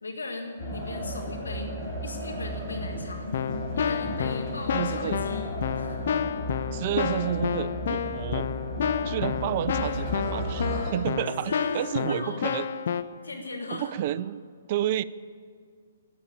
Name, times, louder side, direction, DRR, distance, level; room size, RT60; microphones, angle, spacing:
voice 1, 0.0-1.7 2.0-3.3 3.7-5.4 5.7-6.1 11.4-12.7 13.2-14.0, left 3 dB, 80° left, 3 dB, 1.7 m, -38 dB
sound 1, 0.6-10.9, equal, 25° left, 4.5 m, -34 dB
Keyboard (musical), 2.8-3.0 3.3-13.0, left 7 dB, 60° left, 0.7 m, -30 dB
voice 2, 4.7-5.2 6.7-8.5 9.0-12.7 13.7-15.0, right 12 dB, 45° right, 17 dB, 0.4 m, -30 dB
11.5 x 10.5 x 8.8 m, 2.1 s
hypercardioid pair, 130°, 0 cm